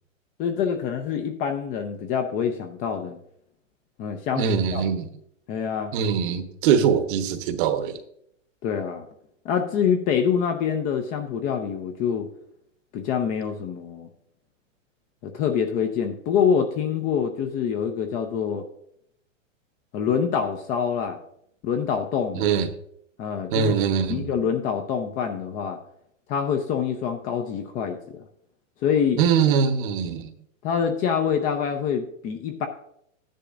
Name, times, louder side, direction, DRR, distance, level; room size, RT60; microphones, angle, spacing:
voice 1, 0.4-3.2 4.0-4.8 5.5-5.9 8.6-9.1 9.4-12.3 12.9-14.1 15.2-18.6 19.9-21.2 21.6-22.5 23.2-23.7 24.1-25.8 26.3-28.2 28.8-29.2 30.6-32.7, left 7 dB, 20° left, 0.6 m, -25 dB
voice 2, 4.3-5.1 5.9-8.0 22.3-22.7 23.5-24.4 29.2-30.3, right 7 dB, 40° right, 1.0 m, -22 dB
12.5 x 10.0 x 2.5 m
hypercardioid pair, 135°, 39 cm